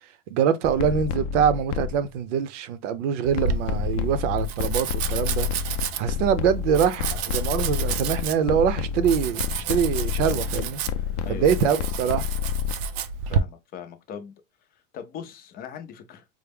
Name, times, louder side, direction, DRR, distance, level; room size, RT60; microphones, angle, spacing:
voice 1, 0.3-5.5 6.0-10.8 11.3-12.3, right 8 dB, 80° right, 0.7 m, -24 dB
sound 1, 0.6-2.1 3.4-12.7, left 9 dB, 75° left, 0.5 m, -29 dB
Domestic sounds home sounds, 3.2-13.4, right 7 dB, 50° right, 0.5 m, -31 dB
voice 2, 11.2-11.7 13.3-14.3 14.7-16.2, left 7 dB, 25° left, 0.4 m, -39 dB
4.7 x 2.1 x 3.4 m
supercardioid pair, 145°, 36 cm